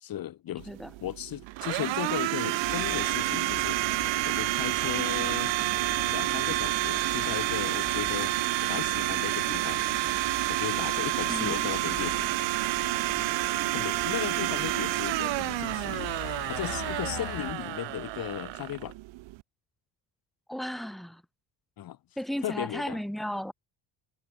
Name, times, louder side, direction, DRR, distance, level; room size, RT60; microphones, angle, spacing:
voice 1, 0.0-0.7 1.0-3.8 4.2-5.5 6.1-8.3 8.6-9.8 10.5-12.7 13.7-16.1 16.5-18.9 21.8-22.0 22.4-23.0, left 12 dB, 50° left, 1.1 m, -36 dB
Domestic sounds home sounds, 0.6-19.4, right 19 dB, 70° right, 0.8 m, -29 dB
sound 1, 2.6-17.5, left 20 dB, 90° left, 1.4 m, -43 dB
voice 2, 11.3-11.6 20.5-21.2 22.2-23.5, equal, ahead, 1.8 m, -34 dB
cardioid pair, 140°, 46 cm